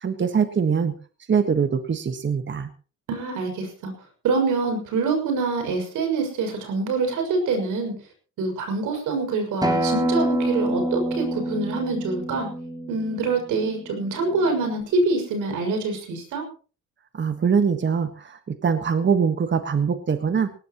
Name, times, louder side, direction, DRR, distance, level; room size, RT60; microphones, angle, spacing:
voice 1, 0.0-1.0 1.3-2.7 17.1-20.5, right 6 dB, 40° right, 8 dB, 1.5 m, -23 dB
voice 2, 3.1-3.9 4.2-7.9 8.4-12.5 12.9-16.4, right 3 dB, 85° right, 4 dB, 6.3 m, -25 dB
Acoustic guitar, 9.6-14.8, right 1 dB, 15° right, 4.0 m, -27 dB
19.5 x 18.0 x 3.1 m, 0.38 s
cardioid pair, 90°, 30 cm